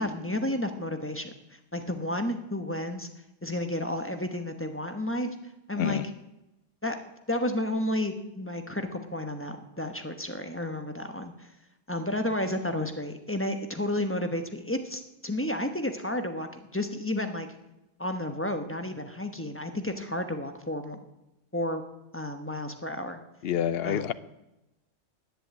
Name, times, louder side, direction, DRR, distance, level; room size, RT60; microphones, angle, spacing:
voice 1, 0.0-3.1 3.4-5.3 5.7-6.0 6.8-6.9 7.3-11.5 11.9-17.5 18.0-21.0 21.5-21.8 22.1-23.2 23.8-24.1, left 1 dB, 10° left, 6 dB, 1.0 m, -32 dB
voice 2, 23.4-24.1, left 9 dB, 60° left, 16 dB, 0.8 m, -27 dB
11.0 x 10.5 x 8.3 m, 0.95 s
omnidirectional pair, 1.3 m